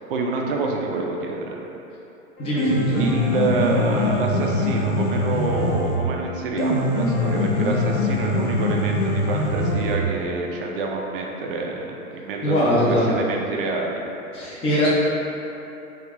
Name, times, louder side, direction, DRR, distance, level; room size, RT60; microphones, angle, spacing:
voice 1, 0.1-1.5 2.9-11.8 12.1-14.0, right 3 dB, 40° right, 0 dB, 0.4 m, -27 dB
Piano, 2.4-10.4, left 1 dB, 90° left, 0.6 m, -23 dB
voice 2, 2.4-3.0 12.4-13.1 14.3-14.9, equal, 15° left, -8 dB, 0.5 m, -21 dB
3.2 x 2.4 x 2.9 m, 2.9 s
figure-of-eight pair, 110°, 43 cm